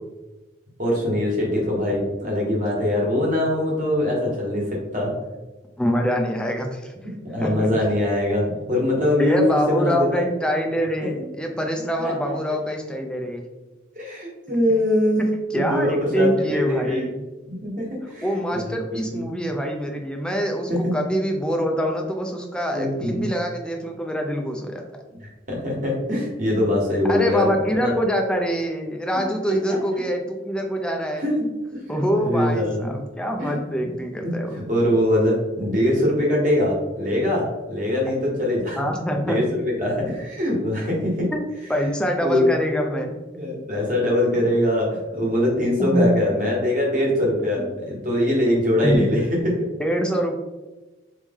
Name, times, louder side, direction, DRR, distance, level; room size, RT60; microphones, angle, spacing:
voice 1, 0.8-5.1 7.2-10.2 12.0-12.1 13.9-15.3 15.6-15.9 16.1-17.0 17.5-18.2 18.5-18.8 19.1-19.2 20.7-20.9 22.7-23.3 25.2-27.9 29.5-29.8 31.2-31.3 31.7-33.0 33.4-33.6 34.2-38.8 39.1-41.3 42.2-42.5 42.9-43.1 43.3-49.6, left 1 dB, 40° right, -3 dB, 1.4 m, -23 dB
voice 2, 5.8-7.1 7.4-7.7 9.2-13.4 15.5-17.2 18.2-24.8 27.1-31.2 31.9-34.5 38.8-39.4 41.3-43.1 45.8-46.1 47.6-47.7 48.8-49.1 49.8-50.3, equal, 5° left, 2 dB, 0.4 m, -24 dB
4.1 x 3.2 x 3.5 m, 1.1 s
head